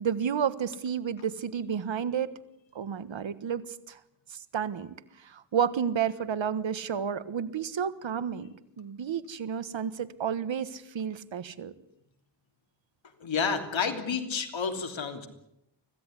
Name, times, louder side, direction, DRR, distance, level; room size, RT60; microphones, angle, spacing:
voice 1, 0.0-2.3 2.7-3.6 3.9-4.0 4.3-8.5 8.8-11.7, right 8 dB, 85° right, 14 dB, 1.5 m, -31 dB
voice 2, 13.2-15.3, left 6 dB, 85° left, 5 dB, 3.2 m, -30 dB
25.0 x 16.0 x 10.0 m, 0.81 s
wide cardioid pair, 75°, 45 cm